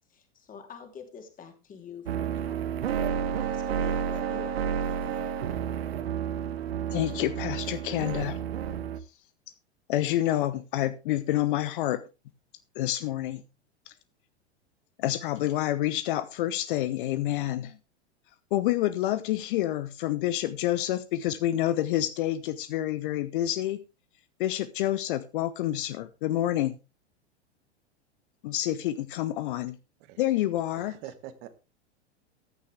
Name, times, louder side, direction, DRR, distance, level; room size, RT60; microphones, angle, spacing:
voice 1, 0.1-2.6 3.4-5.3, left 6 dB, 25° left, 3.2 m, -46 dB
sound 1, 2.1-9.0, right 8 dB, 65° right, 1.3 m, -30 dB
voice 2, 6.9-8.4 9.9-12.0 12.8-13.4 13.9-14.0 15.0-17.8 18.5-23.8 24.4-26.7 28.4-29.8 30.2-31.0, left 13 dB, 50° left, 0.9 m, -28 dB
voice 3, 30.7-31.5, right 12 dB, 45° right, 1.6 m, -44 dB
14.5 x 9.7 x 3.4 m
figure-of-eight pair, 95°, 33 cm